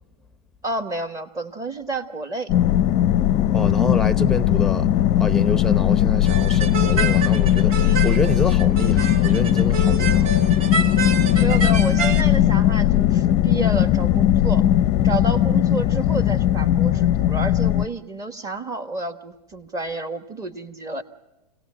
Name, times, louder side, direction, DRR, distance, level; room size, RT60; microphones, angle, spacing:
voice 1, 0.6-2.5 11.4-14.7 15.0-21.0, right 2 dB, 15° right, 1.4 m, -30 dB
sound 1, 2.5-17.9, left 12 dB, 30° left, 0.7 m, -18 dB
voice 2, 3.5-4.9 5.2-10.6, left 2 dB, ahead, 0.8 m, -27 dB
sound 2, 6.3-12.2, right 5 dB, 60° right, 2.8 m, -28 dB
26.5 x 18.0 x 7.4 m
hypercardioid pair, 135°, 21 cm